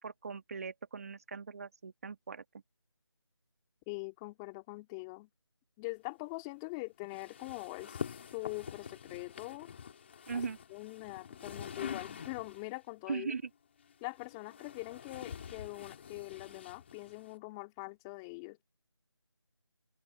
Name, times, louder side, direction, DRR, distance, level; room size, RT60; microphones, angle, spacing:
voice 1, 0.0-2.4 10.3-10.6 13.1-13.4, right 5 dB, 30° right, 2.0 m, -39 dB
voice 2, 3.9-5.3 5.8-9.7 10.3-10.4 10.7-13.3 14.0-18.6, left 26 dB, 10° left, 2.5 m, -43 dB
sound 1, 7.1-12.7 13.8-17.3, left 7 dB, 25° left, 4.6 m, -46 dB
open air
figure-of-eight pair, 165°, 15 cm